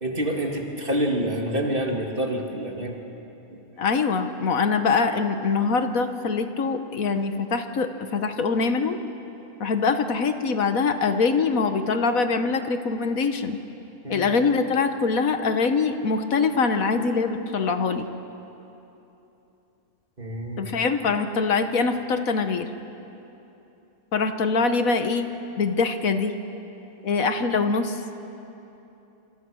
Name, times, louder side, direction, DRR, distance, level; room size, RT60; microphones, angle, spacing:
voice 1, 0.0-3.0 3.5-3.6 14.0-14.3 20.2-20.7, right 1 dB, 35° right, 1 dB, 2.5 m, -27 dB
voice 2, 3.8-9.0 9.6-13.6 14.1-18.1 20.6-22.7 24.1-25.3 25.6-26.3 27.0-28.0, left 4 dB, 70° left, 8 dB, 1.5 m, -23 dB
26.5 x 26.0 x 6.3 m, 3.0 s
omnidirectional pair, 1.5 m